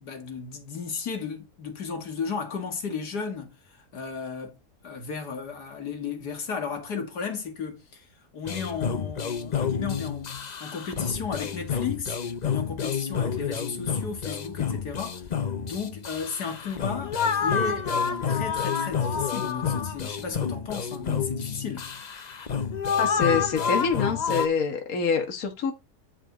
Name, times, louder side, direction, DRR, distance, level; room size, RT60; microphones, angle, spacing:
voice 1, 0.0-4.6 4.8-8.1 8.3-10.3 10.6-12.2 12.4-15.3 15.6-21.9, left 5 dB, 85° left, 2.5 m, -34 dB
sound 1, 8.5-24.5, left 6 dB, 45° left, 0.6 m, -29 dB
voice 2, 23.0-25.7, left 5 dB, 65° left, 1.8 m, -26 dB
9.9 x 5.3 x 3.9 m
omnidirectional pair, 1.7 m